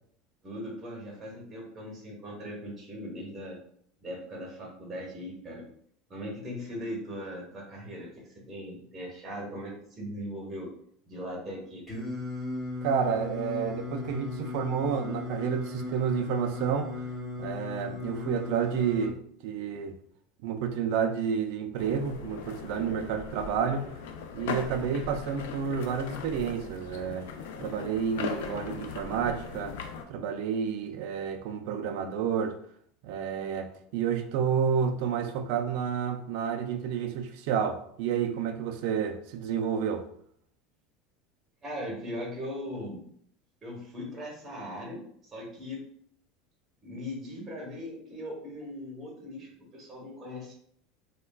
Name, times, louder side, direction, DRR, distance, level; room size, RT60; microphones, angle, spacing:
voice 1, 0.4-3.6 4.0-5.6 6.1-8.1 8.3-10.7 11.1-11.8 41.6-43.0 43.6-45.9 46.8-50.5, equal, 20° right, -2 dB, 0.9 m, -39 dB
Singing, 11.9-19.1, left 3 dB, 10° left, 1.0 m, -36 dB
voice 2, 12.8-17.0 17.4-20.0 20.4-23.9 24.3-27.3 27.6-29.8 30.1-32.6 33.0-40.1, right 7 dB, 65° right, 6 dB, 0.3 m, -30 dB
sound 1, 21.8-30.0, left 6 dB, 85° left, 0.3 m, -39 dB
3.2 x 2.1 x 2.2 m, 0.65 s
supercardioid pair, 140°, 0 cm